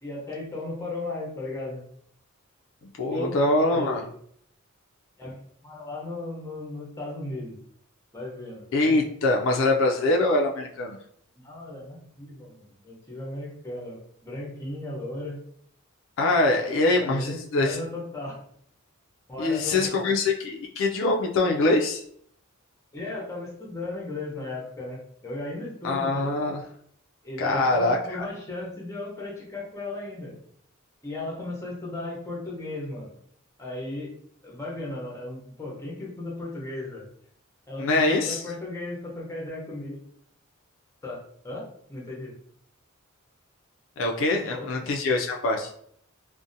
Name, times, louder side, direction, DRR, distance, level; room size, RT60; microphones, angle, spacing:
voice 1, 0.0-1.8 3.1-3.3 3.7-4.0 5.2-5.4 5.6-7.6 8.1-8.6 11.3-14.0 14.2-15.4 16.6-18.4 19.3-19.9 22.9-26.3 27.2-30.3 31.0-33.1 33.6-34.1 34.4-37.0 37.7-40.0 41.0-42.3 44.3-44.7, left 2 dB, 15° left, -3 dB, 0.7 m, -36 dB
voice 2, 3.0-4.0 8.7-11.0 16.2-17.8 19.4-22.0 25.8-26.6 27.4-28.2 37.8-38.4 44.0-45.7, left 2 dB, 65° left, 1 dB, 0.3 m, -23 dB
2.6 x 2.1 x 2.5 m, 0.65 s
head